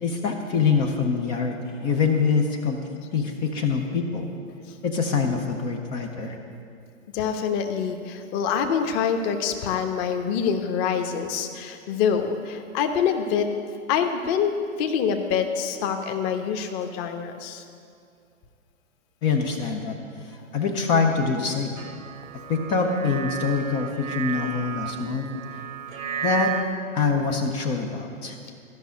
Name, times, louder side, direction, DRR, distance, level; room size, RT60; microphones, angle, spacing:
voice 1, 0.0-2.8 3.1-4.3 4.8-6.4 19.2-20.0 20.2-21.8 22.5-25.3 26.2-26.5 26.9-28.4, left 5 dB, 10° left, 3 dB, 0.4 m, -24 dB
voice 2, 7.1-13.5 13.9-17.6, left 7 dB, 30° left, 5 dB, 1.0 m, -25 dB
sound 1, 21.8-26.6, right 10 dB, 70° right, 1.1 m, -33 dB
14.0 x 6.1 x 9.2 m, 2.3 s
hypercardioid pair, 125°, 40 cm